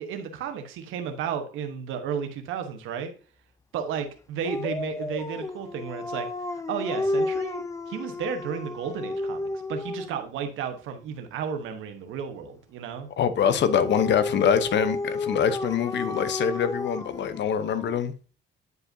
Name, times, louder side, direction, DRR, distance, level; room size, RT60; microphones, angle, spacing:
voice 1, 0.0-3.1 3.7-6.3 6.7-13.1, right 7 dB, 90° right, 1.1 m, -33 dB
Dog, 4.4-10.3 13.4-18.0, left 2 dB, 15° left, 0.5 m, -32 dB
voice 2, 13.2-18.1, left 8 dB, 65° left, 0.8 m, -24 dB
9.5 x 4.8 x 2.7 m
cardioid pair, 90°, 20 cm